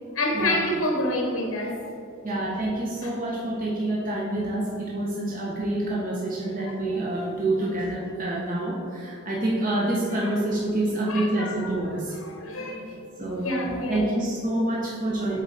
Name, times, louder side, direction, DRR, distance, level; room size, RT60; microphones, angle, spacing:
voice 1, 0.1-1.8 6.5-6.6 10.2-10.3 11.1-11.5 12.2-13.0 13.4-14.2, left 1 dB, 70° left, 1 dB, 1.0 m, -27 dB
voice 2, 2.2-12.2 13.2-13.5 13.9-15.4, right 1 dB, 40° right, -4 dB, 0.8 m, -27 dB
7.4 x 3.8 x 3.9 m, 2.3 s
head